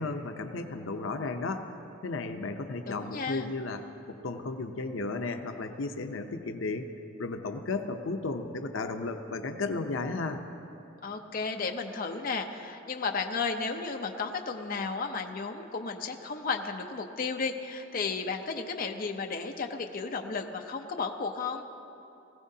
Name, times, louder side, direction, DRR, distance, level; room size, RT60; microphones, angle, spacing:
voice 1, 0.0-1.7 2.0-3.8 4.1-6.9 7.2-10.4, left 3 dB, 85° left, 6 dB, 0.7 m, -34 dB
voice 2, 2.9-3.5 11.0-21.6, left 4 dB, 50° left, 4 dB, 0.7 m, -33 dB
20.5 x 15.0 x 2.8 m, 2.9 s
head